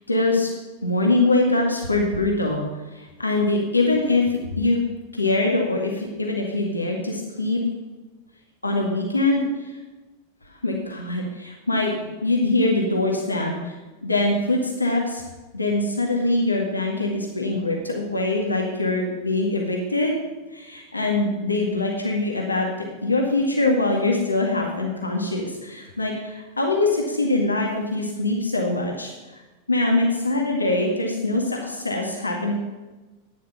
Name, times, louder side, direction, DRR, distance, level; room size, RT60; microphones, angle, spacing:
voice 1, 0.1-0.5 0.8-2.6 2.9-4.8 5.1-7.6 8.6-9.5 10.6-11.9 12.2-13.7 14.0-15.2 15.5-20.1 20.5-22.7 23.0-29.1 29.7-32.5, left 2 dB, 80° left, 0 dB, 1.8 m, -23 dB
11.5 x 9.9 x 5.9 m, 1.2 s
figure-of-eight pair, 90°, 0 cm